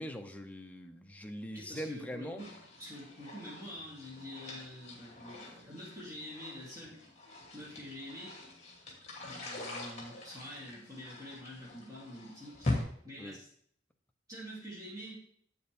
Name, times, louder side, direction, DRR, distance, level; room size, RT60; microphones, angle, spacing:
voice 1, 0.0-2.4 13.2-13.4, equal, 10° left, 5 dB, 0.5 m, -41 dB
voice 2, 1.5-7.0 7.5-8.4 9.2-13.5 14.3-15.2, equal, 20° right, -6 dB, 3.1 m, -47 dB
sound 1, 2.4-12.8, left 2 dB, 35° left, 2.2 m, -43 dB
7.8 x 6.9 x 3.5 m, 0.63 s
head